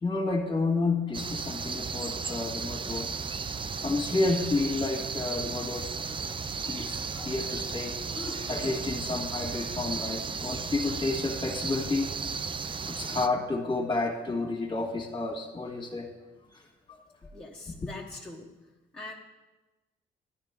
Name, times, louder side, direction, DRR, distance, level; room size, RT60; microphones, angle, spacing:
voice 1, 0.0-3.1 3.8-5.9 6.7-12.1 12.9-16.1 16.5-16.6 16.9-17.0, left 3 dB, 25° left, 2 dB, 1.8 m, -30 dB
sound 1, 1.1-13.3, right 5 dB, 25° right, 0.4 m, -34 dB
voice 2, 17.1-18.5 18.9-19.1, left 2 dB, 5° left, -5 dB, 1.2 m, -43 dB
12.0 x 9.6 x 3.6 m, 1.1 s
cardioid pair, 90°, 20 cm